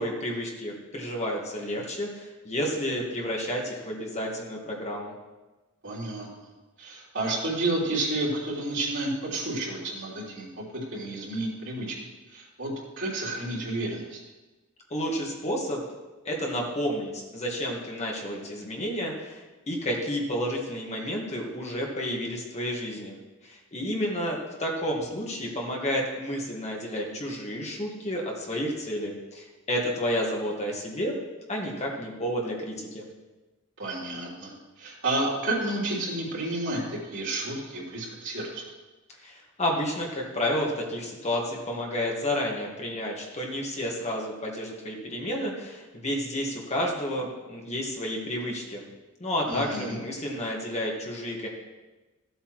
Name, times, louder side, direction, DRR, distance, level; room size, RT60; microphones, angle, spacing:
voice 1, 0.0-5.1 14.9-15.8 16.2-23.2 23.4-31.2 31.5-33.0 39.2-48.8 49.2-51.5, equal, 30° left, -1 dB, 1.7 m, -31 dB
voice 2, 5.8-6.5 6.8-12.0 12.3-14.2 33.8-38.6 49.5-50.0, right 2 dB, 60° right, -6 dB, 3.3 m, -31 dB
15.0 x 8.0 x 3.1 m, 1.2 s
head